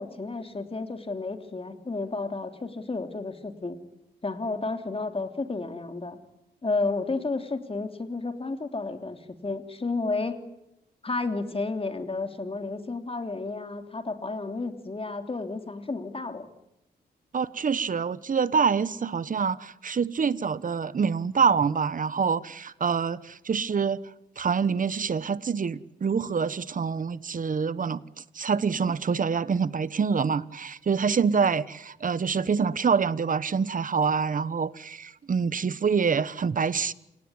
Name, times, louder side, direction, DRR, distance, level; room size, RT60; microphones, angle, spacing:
voice 1, 0.0-3.8 4.2-6.2 6.6-10.4 11.0-16.5, left 3 dB, 30° left, 3.3 m, -32 dB
voice 2, 17.3-24.0 24.4-28.0 28.3-36.9, right 6 dB, 50° right, 1.2 m, -26 dB
28.0 x 18.5 x 9.9 m
cardioid pair, 65°, 18 cm